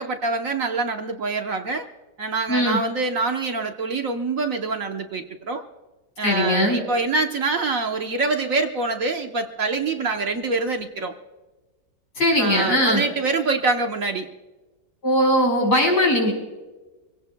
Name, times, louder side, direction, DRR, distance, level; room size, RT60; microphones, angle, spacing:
voice 1, 0.0-1.9 2.2-5.6 6.2-11.1 12.4-14.3, right 3 dB, 55° right, 4 dB, 1.3 m, -25 dB
voice 2, 2.5-2.8 6.2-6.8 12.2-13.0 15.0-16.3, left 1 dB, 65° left, 0 dB, 5.4 m, -19 dB
25.5 x 17.0 x 2.2 m, 1.2 s
omnidirectional pair, 1.9 m